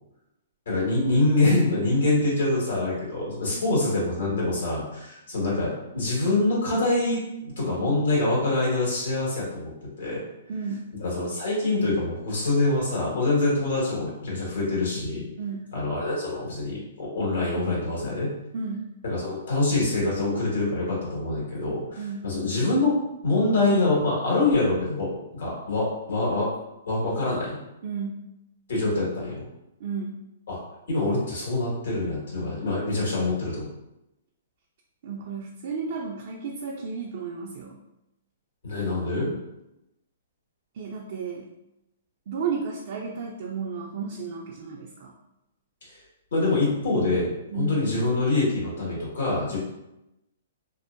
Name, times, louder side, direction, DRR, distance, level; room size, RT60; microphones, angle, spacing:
voice 1, 0.6-9.7 10.0-10.2 11.0-15.2 15.7-18.3 19.0-22.9 23.2-26.5 26.9-27.6 28.7-29.4 30.5-30.6 30.9-33.7 38.6-39.3 45.8-46.0 46.3-49.6, left 2 dB, 80° left, -5 dB, 1.3 m, -25 dB
voice 2, 10.5-10.9 15.4-15.7 18.5-18.9 22.0-22.3 27.8-28.3 29.8-30.2 35.0-37.8 40.7-41.5 42.3-45.1 47.5-47.9, right 5 dB, 50° right, -1 dB, 0.3 m, -33 dB
2.6 x 2.1 x 2.4 m, 0.90 s
hypercardioid pair, 150°, 0 cm